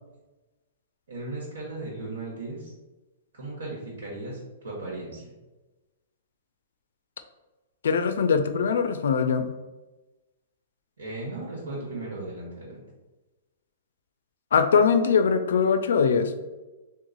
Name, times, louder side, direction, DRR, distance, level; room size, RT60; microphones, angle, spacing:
voice 1, 1.1-2.7 3.3-5.3 11.0-12.8, right 2 dB, 80° right, -4 dB, 1.2 m, -36 dB
voice 2, 7.8-9.5 14.5-16.3, left 6 dB, 80° left, 8 dB, 0.3 m, -22 dB
3.0 x 2.1 x 3.8 m, 1.1 s
hypercardioid pair, 145°, 0 cm